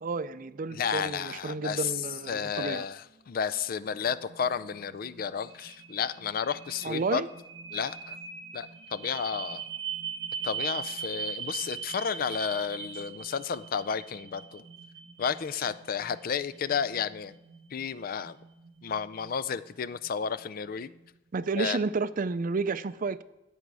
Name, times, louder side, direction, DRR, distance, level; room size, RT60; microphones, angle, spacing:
voice 1, 0.0-2.8 6.8-7.3 21.3-23.2, right 4 dB, 50° right, 15 dB, 0.4 m, -31 dB
voice 2, 0.7-1.9 2.3-7.2 7.7-8.2 8.5-9.6 10.4-14.6 15.2-17.3 17.7-18.4 18.8-20.9 21.6-21.8, left 7 dB, 50° left, 16 dB, 0.4 m, -32 dB
sound 1, 3.0-21.1, right 7 dB, 75° right, 0.9 m, -42 dB
13.5 x 8.1 x 4.8 m, 0.94 s
head